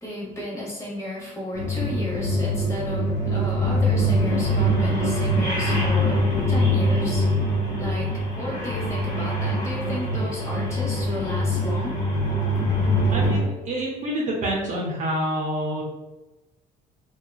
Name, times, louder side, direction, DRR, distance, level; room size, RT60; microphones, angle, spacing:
voice 1, 0.0-6.2 6.5-7.3 7.8-8.1 8.4-12.0, left 1 dB, 15° left, -5 dB, 1.1 m, -33 dB
sound 1, 1.5-13.4, equal, 40° left, 1.0 m, -23 dB
voice 2, 13.1-15.8, right 1 dB, 45° right, -3 dB, 0.7 m, -27 dB
2.8 x 2.2 x 2.3 m, 1.1 s
cardioid pair, 110°, 17 cm